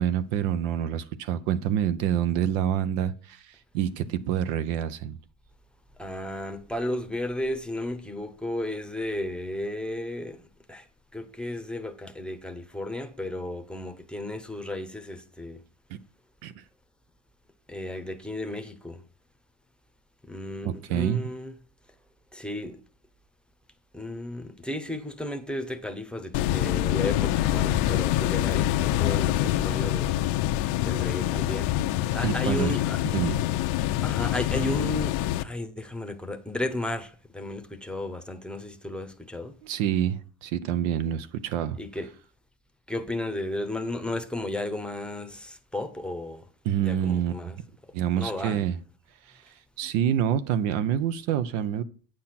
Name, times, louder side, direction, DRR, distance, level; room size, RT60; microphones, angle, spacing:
voice 1, 0.0-5.2 15.9-16.0 16.4-16.6 20.6-21.3 32.2-32.7 33.1-33.4 39.6-41.8 46.6-47.5 47.9-48.8 49.3-51.8, right 10 dB, 85° right, 1.0 m, -27 dB
voice 2, 6.0-10.4 10.7-10.9 11.1-15.6 17.7-19.0 20.2-21.5 22.3-22.8 23.9-30.2 30.8-31.7 32.1-33.0 34.0-39.6 41.8-42.1 42.9-46.5 46.8-47.6 47.8-48.6, left 1 dB, ahead, 0.7 m, -34 dB
sound 1, 26.3-35.4, left 13 dB, 75° left, 0.8 m, -25 dB
8.9 x 6.5 x 5.9 m
cardioid pair, 135°, 47 cm